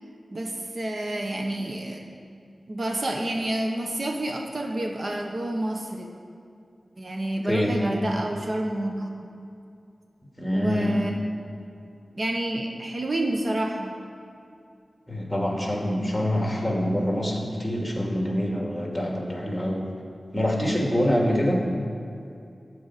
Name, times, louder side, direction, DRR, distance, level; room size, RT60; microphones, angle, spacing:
voice 1, 0.3-2.1 2.7-6.1 7.0-9.1 10.5-11.1 12.1-13.9, right 1 dB, 55° right, 2 dB, 1.1 m, -29 dB
voice 2, 7.4-7.8 10.4-11.0 15.1-19.8 20.3-21.7, equal, 5° left, -1 dB, 2.5 m, -25 dB
12.0 x 4.7 x 8.4 m, 2.5 s
cardioid pair, 50°, 0 cm